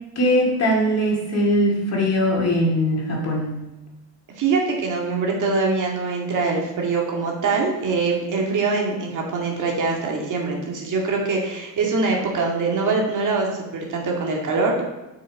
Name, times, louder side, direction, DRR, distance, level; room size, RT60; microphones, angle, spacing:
voice 1, 0.2-3.5, equal, 30° left, -1 dB, 2.3 m, -20 dB
voice 2, 4.4-14.8, right 4 dB, 40° right, -1 dB, 2.0 m, -23 dB
6.9 x 5.8 x 4.0 m, 1.0 s
supercardioid pair, 95°, 48 cm